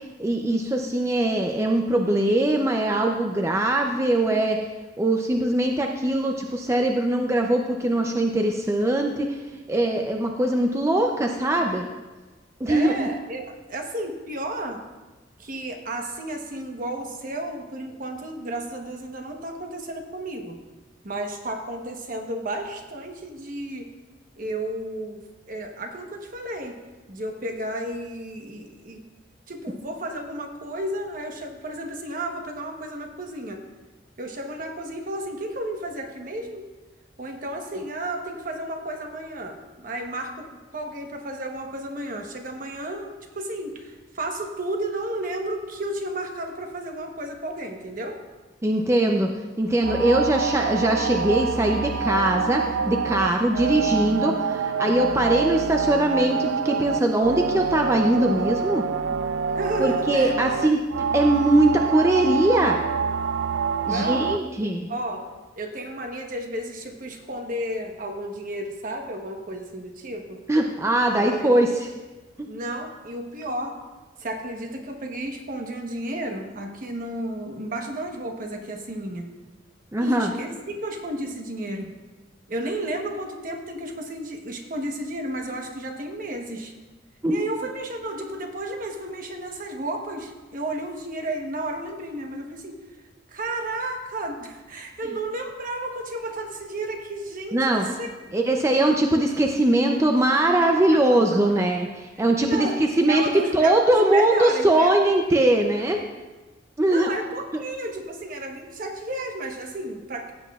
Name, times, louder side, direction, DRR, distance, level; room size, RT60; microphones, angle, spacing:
voice 1, 0.2-4.6 5.0-9.4 9.7-11.9 12.6-13.1 48.6-49.3 49.6-58.8 59.8-60.8 61.1-62.8 63.9-64.9 70.5-71.7 79.9-80.3 87.2-87.5 97.5-97.9 98.3-102.7 103.0-103.2 103.5-106.0 106.8-107.1, right 1 dB, 15° right, 2 dB, 0.5 m, -21 dB
voice 2, 12.6-14.8 15.4-20.5 21.0-23.9 24.4-26.8 27.1-29.0 29.5-33.6 34.2-36.7 37.2-48.2 59.5-60.6 63.8-64.3 64.9-65.2 65.6-70.4 71.1-71.5 72.5-73.8 74.2-79.3 80.0-82.0 82.5-86.7 87.3-92.8 93.3-98.1 100.6-101.4 102.4-102.8 103.1-104.9 106.8-110.3, right 1 dB, 50° right, 3 dB, 1.0 m, -32 dB
sound 1, 49.8-64.4, right 6 dB, 85° right, 0.3 m, -26 dB
15.5 x 8.2 x 2.4 m, 1.2 s
head